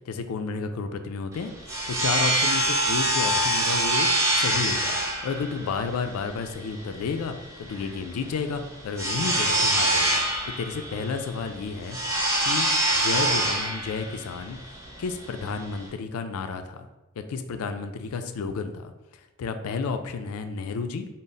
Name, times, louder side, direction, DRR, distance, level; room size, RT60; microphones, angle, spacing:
voice 1, 0.1-1.5 1.9-4.1 4.3-5.0 5.2-14.6 15.0-16.9 17.2-18.9 19.4-21.1, left 5 dB, 80° left, 8 dB, 0.4 m, -31 dB
sound 1, 1.3-15.9, right 1 dB, 15° right, 0.5 m, -25 dB
3.9 x 2.0 x 3.7 m, 1.0 s
head